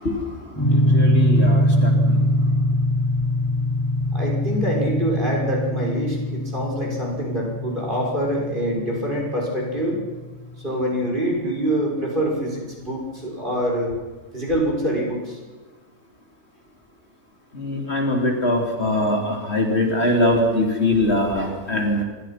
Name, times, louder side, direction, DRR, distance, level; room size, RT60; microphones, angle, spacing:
sound 1, 0.6-10.7, equal, 15° left, 5.2 m, -22 dB
voice 1, 0.7-1.9 17.6-22.0, left 1 dB, 50° left, 2 dB, 3.7 m, -22 dB
voice 2, 4.1-10.0 10.6-13.9 14.3-15.4, equal, 35° right, -2 dB, 6.4 m, -25 dB
27.0 x 23.5 x 6.0 m, 1.2 s
omnidirectional pair, 1.4 m